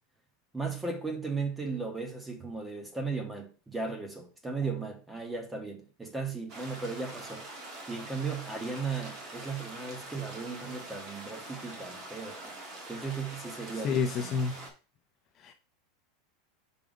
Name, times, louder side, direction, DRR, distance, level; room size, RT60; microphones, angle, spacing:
voice 1, 0.5-7.5 7.9-12.5 12.9-14.4, right 4 dB, 5° right, 1.0 m, -36 dB
sound 1, 6.5-14.7, right 2 dB, 30° right, 1.7 m, -44 dB
voice 2, 13.8-14.7 15.4-15.5, left 5 dB, 25° left, 0.5 m, -29 dB
5.4 x 3.5 x 5.1 m
supercardioid pair, 170°, 0 cm